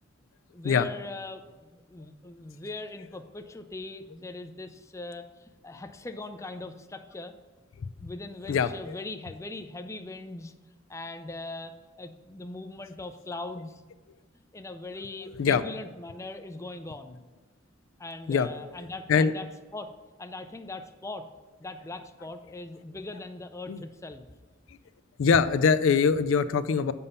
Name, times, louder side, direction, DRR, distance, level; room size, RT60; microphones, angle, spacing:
voice 1, 0.5-7.3 8.0-10.5 10.9-13.8 14.5-17.2 18.0-19.5 19.7-19.9 20.2-21.3 21.6-24.3 25.3-25.6, left 2 dB, 15° left, 7 dB, 0.4 m, -40 dB
voice 2, 8.4-8.9 15.4-15.6 18.3-18.5 19.1-19.3 23.7-23.8 25.2-26.9, left 6 dB, 75° left, 12 dB, 0.4 m, -23 dB
7.0 x 5.5 x 5.3 m, 1.3 s
head